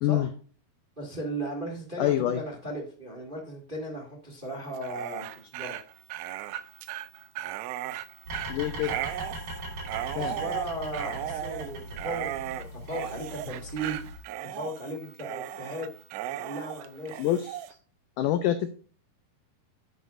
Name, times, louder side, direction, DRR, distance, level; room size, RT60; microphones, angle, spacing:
voice 1, 1.0-5.8 10.1-14.0 14.5-15.9 16.3-17.2, right 1 dB, 20° right, 0 dB, 1.5 m, -36 dB
voice 2, 2.0-2.4 8.5-8.9 10.2-10.4 17.2-17.6 18.2-18.7, left 12 dB, 80° left, 9 dB, 1.8 m, -26 dB
Dog, 4.7-17.7, right 12 dB, 85° right, 2.8 m, -36 dB
sound 1, 8.3-14.2, right 1 dB, 55° right, 6.6 m, -40 dB
10.0 x 9.3 x 2.6 m, 0.40 s
omnidirectional pair, 4.6 m